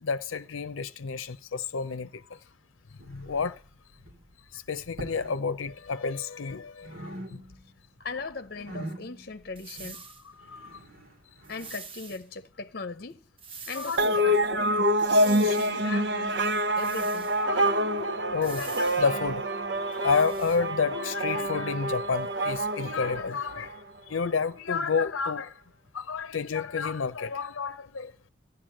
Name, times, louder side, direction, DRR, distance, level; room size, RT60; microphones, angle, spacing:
voice 1, 0.0-2.2 3.1-3.6 4.5-7.0 7.3-7.4 10.5-10.7 13.8-14.7 17.4-19.4 19.8-23.8 24.1-25.5 25.9-28.1, left 5 dB, 85° left, 0.6 m, -30 dB
sound 1, 3.0-3.7 3.9-4.3 4.8-5.4 5.7-6.6 6.8-7.8 8.1-11.8, right 1 dB, 80° right, 3.1 m, -44 dB
voice 2, 8.0-10.1 11.5-13.2 13.7-14.7 15.2-16.4 16.8-17.4, left 4 dB, 50° left, 0.8 m, -38 dB
sound 2, 9.6-10.2 11.4-12.2 13.4-14.1 15.0-15.8 16.8-17.4 18.4-19.1 19.9-20.6, right 5 dB, 25° right, 0.9 m, -45 dB
sound 3, 14.0-23.8, equal, 60° right, 0.8 m, -27 dB
15.0 x 11.0 x 7.7 m
head